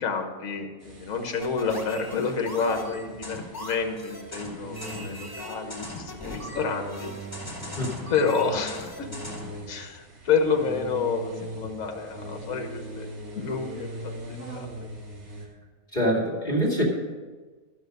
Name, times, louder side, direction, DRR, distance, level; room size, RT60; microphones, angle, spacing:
voice 1, 0.0-7.1 8.1-9.1 9.7-13.1 13.3-14.7, left 5 dB, 65° left, 5 dB, 1.5 m, -29 dB
sound 1, 0.8-15.5, right 1 dB, 70° right, 2.9 m, -41 dB
sound 2, 1.4-9.6, left 1 dB, 15° left, 2.5 m, -39 dB
voice 2, 15.9-16.8, equal, 30° left, -2 dB, 2.4 m, -24 dB
12.5 x 6.9 x 6.5 m, 1.4 s
omnidirectional pair, 1.6 m